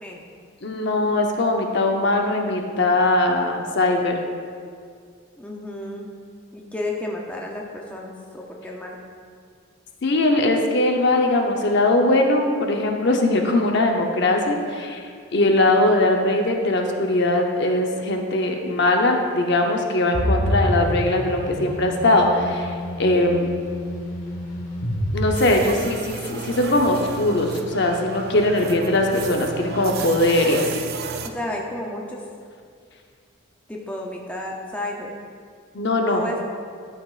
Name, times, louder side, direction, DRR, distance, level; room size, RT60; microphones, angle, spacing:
voice 1, 0.6-4.2 10.0-23.5 25.1-30.9 35.7-36.2, left 2 dB, 55° left, 2 dB, 0.7 m, -20 dB
voice 2, 5.4-6.1 6.5-9.0 31.2-32.2 33.7-35.2 36.0-36.4, left 1 dB, 5° left, -2 dB, 0.6 m, -32 dB
sound 1, 20.1-26.1, equal, 80° left, 1.2 m, -27 dB
sound 2, 25.3-31.3, right 4 dB, 50° right, 0.4 m, -32 dB
12.0 x 5.8 x 2.4 m, 2.1 s
head